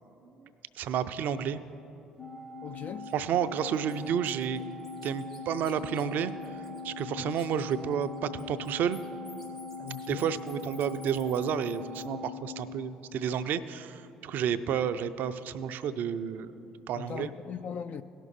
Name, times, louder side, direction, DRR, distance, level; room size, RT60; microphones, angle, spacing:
voice 1, 0.8-1.6 3.1-4.6 5.0-6.3 6.8-9.0 10.1-16.5 16.9-17.3, right 8 dB, 60° right, 12 dB, 0.4 m, -31 dB
Organ, 2.2-13.4, left 4 dB, 25° left, 0.9 m, -42 dB
voice 2, 2.6-3.1 7.0-7.3 9.8-10.3 14.5-14.6 17.0-18.0, left 8 dB, 50° left, 10 dB, 0.3 m, -40 dB
Bird, 3.0-3.1 3.6-7.0 7.3-12.0, left 3 dB, 85° left, 2.0 m, -54 dB
17.5 x 6.0 x 4.1 m, 3.0 s
hypercardioid pair, 55°, 3 cm